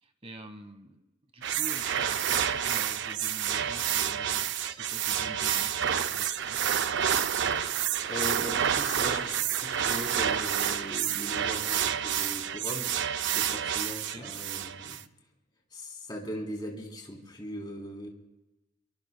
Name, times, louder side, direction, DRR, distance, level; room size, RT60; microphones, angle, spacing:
voice 1, 0.0-1.0 1.3-6.6 14.1-14.3, right 1 dB, 25° right, 7 dB, 1.4 m, -47 dB
sound 1, 1.4-15.0, right 9 dB, 55° right, 0.5 m, -29 dB
voice 2, 8.1-12.9 13.3-15.0 15.7-18.1, left 1 dB, 20° left, -1 dB, 3.5 m, -39 dB
26.0 x 23.0 x 2.3 m, 0.99 s
head